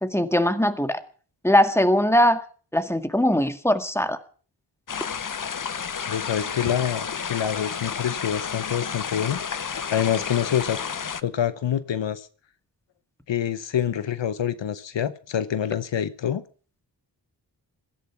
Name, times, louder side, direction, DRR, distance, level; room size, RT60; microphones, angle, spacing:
voice 1, 0.0-1.0 1.4-2.4 2.7-4.2, left 1 dB, 5° left, 1.9 m, -21 dB
sound 1, 4.9-11.2, left 6 dB, 45° left, 0.8 m, -31 dB
voice 2, 6.1-10.8 11.2-12.3 13.3-16.4, left 9 dB, 90° left, 0.9 m, -26 dB
16.5 x 13.5 x 5.9 m
wide cardioid pair, 60°, 43 cm